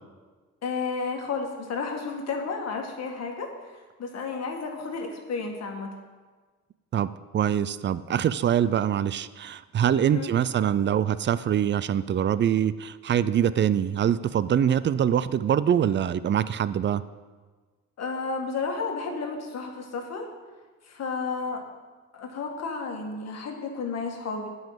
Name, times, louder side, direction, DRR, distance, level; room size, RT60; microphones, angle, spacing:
voice 1, 0.6-5.9 10.0-10.3 18.0-20.3 20.8-21.6 22.1-24.5, left 4 dB, 55° left, 2 dB, 1.8 m, -32 dB
voice 2, 6.9-17.0, right 9 dB, 40° right, 16 dB, 0.4 m, -24 dB
8.9 x 5.6 x 7.5 m, 1.4 s
cardioid pair, 90°, 30 cm